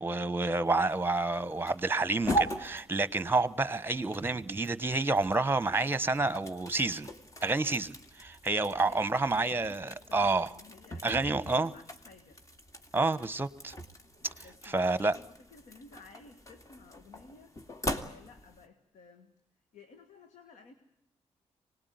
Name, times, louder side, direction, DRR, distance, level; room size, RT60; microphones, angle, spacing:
voice 1, 0.0-7.1 7.4-10.5 11.0-11.7 12.9-13.7 14.4-15.2, right 3 dB, 20° right, 1.2 m, -29 dB
sound 1, 0.6-18.7, equal, 25° left, 2.4 m, -41 dB
voice 2, 8.3-12.4 14.4-19.3 19.7-20.7, left 4 dB, 90° left, 1.9 m, -55 dB
25.0 x 20.0 x 9.5 m
cardioid pair, 70°, 12 cm